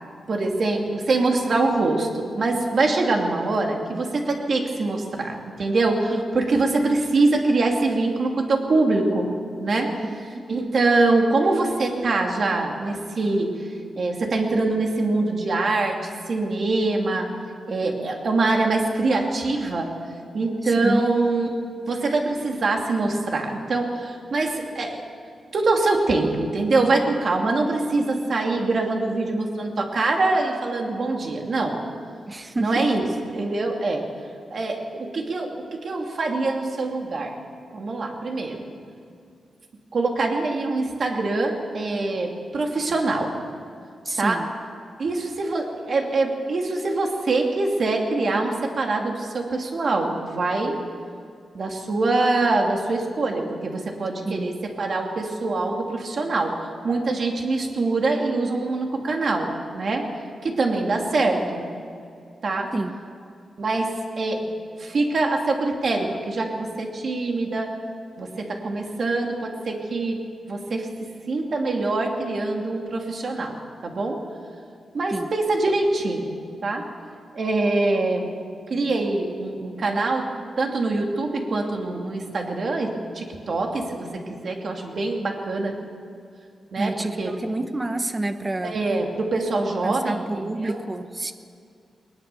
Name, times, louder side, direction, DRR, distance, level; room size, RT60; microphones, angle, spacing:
voice 1, 0.3-9.3 9.6-9.9 10.5-13.7 14.0-16.0 16.3-17.3 17.7-19.9 20.3-21.5 21.9-25.0 25.5-31.8 32.6-33.0 33.3-34.1 34.5-37.3 37.7-38.6 39.9-43.3 44.2-44.4 45.0-50.7 51.5-56.5 56.8-60.1 60.4-61.7 62.4-62.7 63.6-67.7 68.2-70.9 71.3-73.6 73.8-74.2 74.9-76.8 77.3-78.3 78.7-80.3 80.6-85.8 86.7-87.3 88.6-90.8, right 3 dB, 45° right, 1 dB, 2.7 m, -24 dB
voice 2, 10.0-10.4 20.8-21.1 32.3-32.9 44.1-44.5 54.2-54.5 62.7-62.9 75.1-75.3 86.8-88.8 89.8-91.3, right 2 dB, 20° right, 8 dB, 1.1 m, -28 dB
20.5 x 20.0 x 7.0 m, 2.3 s
wide cardioid pair, 155°, 0 cm